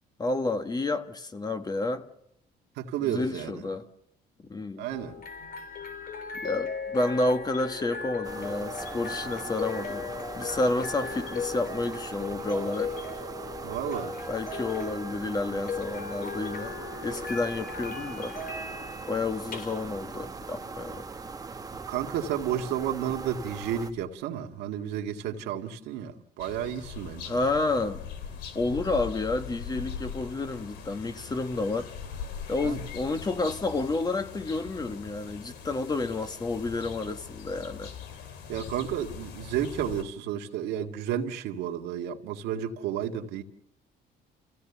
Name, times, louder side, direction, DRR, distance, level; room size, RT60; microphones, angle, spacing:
voice 1, 0.2-2.1 3.0-3.9 4.5-4.9 6.4-12.9 14.3-18.4 19.1-21.1 27.2-28.1 28.5-31.9 32.5-37.9, left 2 dB, 25° left, 1.5 m, -30 dB
voice 2, 2.8-3.6 4.8-5.2 13.6-14.1 21.9-27.4 32.6-32.8 38.5-43.4, right 10 dB, 90° right, 1.9 m, -32 dB
sound 1, 4.9-24.0, left 4 dB, 60° left, 3.7 m, -38 dB
sound 2, 8.2-23.9, right 4 dB, 20° right, 0.9 m, -41 dB
sound 3, 26.4-40.0, left 6 dB, 90° left, 2.5 m, -41 dB
30.0 x 16.5 x 6.9 m
cardioid pair, 110°, 17 cm